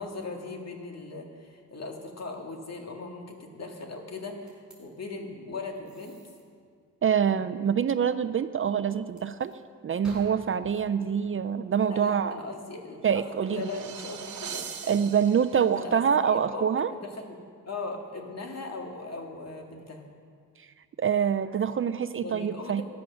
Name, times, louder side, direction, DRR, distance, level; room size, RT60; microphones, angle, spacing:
voice 1, 0.0-6.2 11.9-14.7 15.7-16.1 16.5-17.4 17.7-20.0 22.2-22.8, left 3 dB, 50° left, 2 dB, 2.0 m, -39 dB
sound 1, 4.5-4.8 5.9-6.4 9.1-9.5 10.0-12.3, right 1 dB, 5° right, 4.5 m, -52 dB
voice 2, 7.0-9.6 9.8-12.4 13.0-13.7 14.9-16.9 20.6-20.7 21.0-22.8, right 7 dB, 40° right, 13 dB, 0.5 m, -25 dB
sound 2, 12.9-15.9, right 7 dB, 60° right, 1.2 m, -41 dB
14.0 x 10.5 x 6.3 m, 2.1 s
cardioid pair, 90°, 33 cm